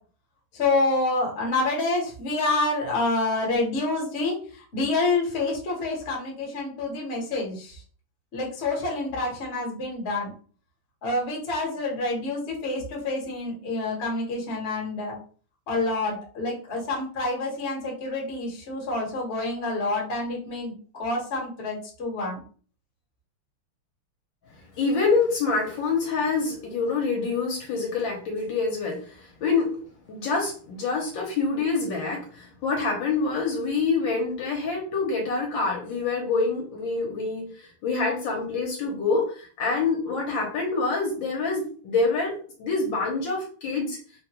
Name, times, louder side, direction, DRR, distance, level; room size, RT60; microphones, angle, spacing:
voice 1, 0.5-4.4 4.7-7.8 8.3-10.3 11.0-15.2 15.7-22.4, left 2 dB, 40° left, -1 dB, 1.0 m, -27 dB
voice 2, 24.7-29.7 30.1-44.0, left 4 dB, 70° left, 0 dB, 1.4 m, -26 dB
3.7 x 2.3 x 2.8 m, 0.42 s
omnidirectional pair, 2.4 m